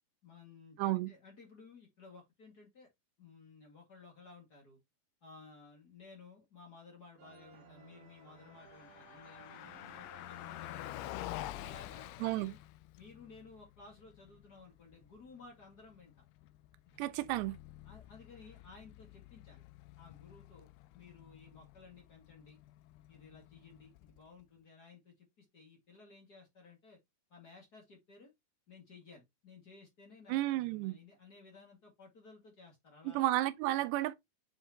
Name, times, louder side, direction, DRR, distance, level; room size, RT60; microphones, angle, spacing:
voice 1, 0.2-2.9 3.2-4.8 5.2-11.2 11.6-12.6 13.0-16.1 16.8-17.0 17.8-19.6 20.0-22.6 23.1-27.0 27.3-28.3 28.7-33.2, left 4 dB, 40° left, 1.5 m, -56 dB
voice 2, 0.8-1.1 12.2-12.5 17.0-17.6 30.3-31.0 33.1-34.2, right 16 dB, 85° right, 2.8 m, -32 dB
sound 1, 7.2-12.4, right 5 dB, 55° right, 2.6 m, -59 dB
Car passing by, 8.3-24.4, left 16 dB, 85° left, 2.4 m, -49 dB
7.8 x 4.4 x 2.9 m
omnidirectional pair, 4.8 m